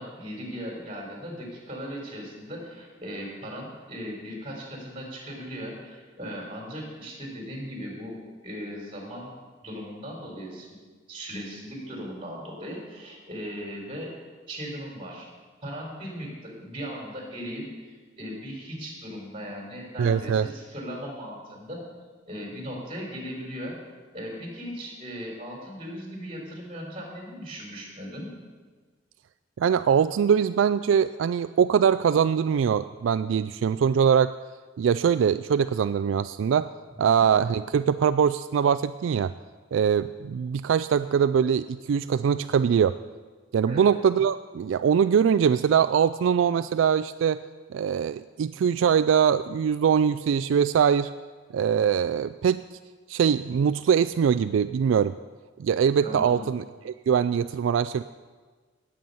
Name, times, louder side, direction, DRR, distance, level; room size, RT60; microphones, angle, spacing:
voice 1, 0.0-8.2 8.4-9.3 9.6-10.7 11.1-14.1 14.5-15.3 15.6-21.8 22.3-23.7 24.1-28.3 43.7-43.9 56.0-56.5, equal, 30° right, -1 dB, 4.1 m, -38 dB
voice 2, 20.0-20.5 29.6-34.3 34.8-36.7 37.0-39.3 39.7-43.0 43.5-47.4 47.7-51.1 51.5-52.8 53.1-55.1 55.6-58.0, right 7 dB, 80° right, 12 dB, 0.3 m, -22 dB
18.0 x 7.9 x 5.5 m, 1.4 s
head